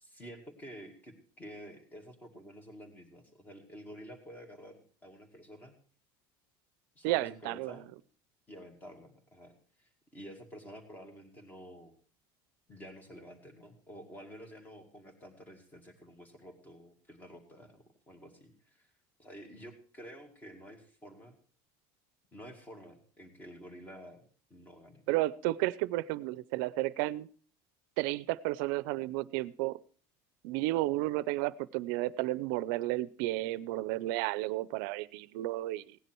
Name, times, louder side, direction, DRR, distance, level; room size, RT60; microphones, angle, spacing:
voice 1, 0.0-5.8 7.0-7.9 8.5-11.9 12.7-18.9 19.2-21.4 22.3-24.2 24.5-25.0, equal, 15° left, 6 dB, 2.2 m, -50 dB
voice 2, 7.0-7.7 25.1-27.3 28.0-29.8 30.4-36.0, right 18 dB, 75° right, 19 dB, 0.6 m, -32 dB
17.0 x 10.0 x 4.5 m, 0.42 s
cardioid pair, 160°, 11 cm